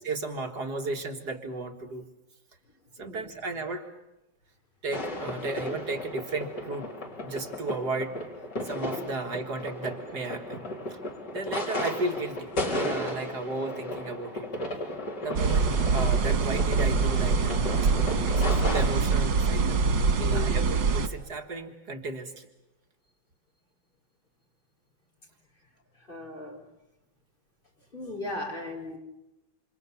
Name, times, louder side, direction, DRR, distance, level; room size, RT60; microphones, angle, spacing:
voice 1, 0.0-2.1 3.0-3.9 4.8-6.9 7.2-8.2 8.6-11.0 11.3-14.5 15.2-17.6 17.8-17.9 18.2-19.8 20.2-22.5, right 3 dB, 60° right, 4 dB, 2.3 m, -34 dB
voice 2, 3.0-3.3 20.1-20.7 26.1-26.7 27.9-29.0, left 2 dB, 25° left, 1 dB, 4.6 m, -37 dB
sound 1, 4.9-19.0, left 1 dB, 70° left, 5.0 m, -35 dB
sound 2, 15.4-21.1, right 4 dB, 90° right, 2.2 m, -24 dB
28.5 x 27.5 x 7.1 m, 0.93 s
omnidirectional pair, 2.0 m